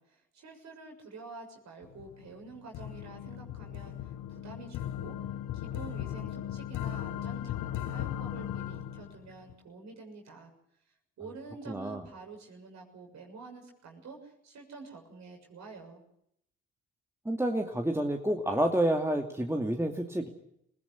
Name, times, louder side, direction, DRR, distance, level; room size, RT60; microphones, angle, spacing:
voice 1, 0.0-5.2 5.5-10.5 11.2-16.0, right 4 dB, 65° right, 3 dB, 7.0 m, -48 dB
sound 1, 1.8-9.5, left 11 dB, 75° left, 1.3 m, -37 dB
voice 2, 11.7-12.0 17.3-20.3, right 1 dB, 10° right, 3 dB, 2.5 m, -29 dB
22.0 x 17.0 x 9.9 m, 0.75 s
supercardioid pair, 60°, 30 cm